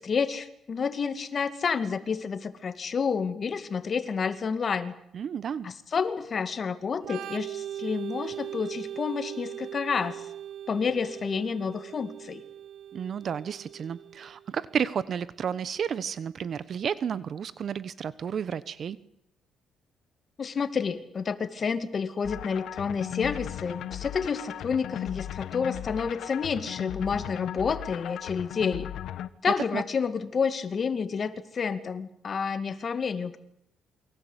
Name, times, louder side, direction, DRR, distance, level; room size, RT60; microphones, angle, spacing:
voice 1, 0.0-4.9 5.6-10.2 10.7-12.4 20.4-28.9 29.4-33.4, left 6 dB, 40° left, 11 dB, 2.3 m, -29 dB
voice 2, 5.1-5.7 12.9-19.0 29.7-29.8, right 7 dB, 50° right, 16 dB, 1.1 m, -32 dB
Organ, 7.0-14.5, right 10 dB, 80° right, 1.4 m, -40 dB
sound 1, 22.2-29.3, left 11 dB, 70° left, 1.3 m, -37 dB
28.5 x 23.5 x 8.2 m, 0.71 s
cardioid pair, 120°, 0 cm